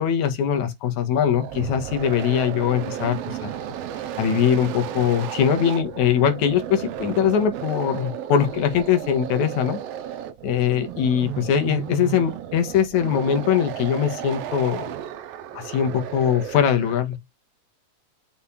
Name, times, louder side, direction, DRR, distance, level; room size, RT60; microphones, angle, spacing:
voice 1, 0.0-3.5 4.2-9.8 10.4-14.9 15.5-17.2, left 8 dB, 75° left, 2.7 m, -22 dB
sound 1, 1.0-17.1, right 10 dB, 70° right, 1.6 m, -34 dB
6.6 x 4.2 x 3.8 m
omnidirectional pair, 3.4 m